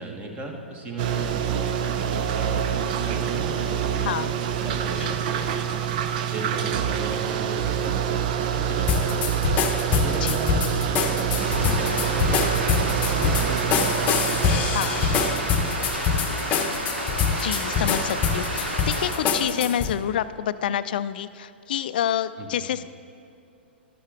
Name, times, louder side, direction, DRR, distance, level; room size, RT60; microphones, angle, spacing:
voice 1, 0.0-4.2 4.6-5.8 6.3-9.4 9.9-14.4 15.0-15.8 16.5-16.8 22.4-22.6, right 2 dB, 20° right, 2 dB, 1.6 m, -36 dB
sound 1, 1.0-16.2, right 9 dB, 45° right, 0.6 m, -26 dB
sound 2, 8.9-19.9, left 6 dB, 25° left, 0.9 m, -25 dB
sound 3, 11.3-19.1, right 1 dB, 75° right, 2.1 m, -31 dB
voice 2, 14.7-15.0 17.4-22.8, left 10 dB, 50° left, 14 dB, 0.4 m, -28 dB
12.0 x 12.0 x 3.7 m, 2.7 s
figure-of-eight pair, 110°, 6 cm